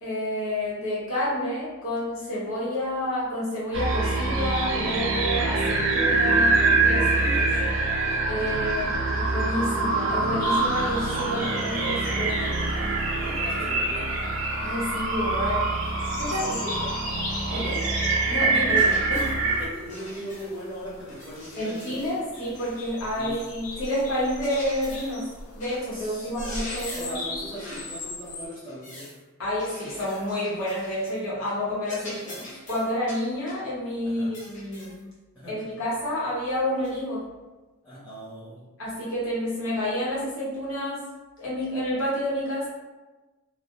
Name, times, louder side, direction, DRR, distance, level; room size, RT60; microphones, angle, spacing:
voice 1, 0.0-7.3 8.3-12.9 14.6-15.7 16.2-16.4 17.5-17.6 18.3-19.3 21.6-25.3 25.5-27.3 29.4-35.0 35.5-37.2 38.8-41.0 41.4-42.7, left 1 dB, 65° left, -9 dB, 0.9 m, -29 dB
sound 1, 3.7-19.7, right 3 dB, 55° right, 0.4 m, -24 dB
voice 2, 6.9-7.7 8.3-9.0 11.3-11.7 13.2-14.2 16.3-17.0 17.5-17.8 19.6-22.0 23.1-23.4 25.9-26.5 26.9-29.1 34.0-34.3 35.3-35.6 37.8-38.7, equal, 5° left, -13 dB, 0.8 m, -39 dB
sound 2, 10.4-28.5, left 2 dB, 90° left, 0.5 m, -40 dB
sound 3, 18.7-19.4 19.9-20.7 21.1-23.0 23.7-25.2 25.6-25.9 26.2-27.2 27.5-27.9 28.5-29.2 29.6-31.2 31.5-31.6 31.8-33.7 34.3-35.0 35.6-35.7 36.8-37.0, left 1 dB, 35° left, 0.6 m, -43 dB
2.2 x 2.1 x 2.9 m, 1.2 s
head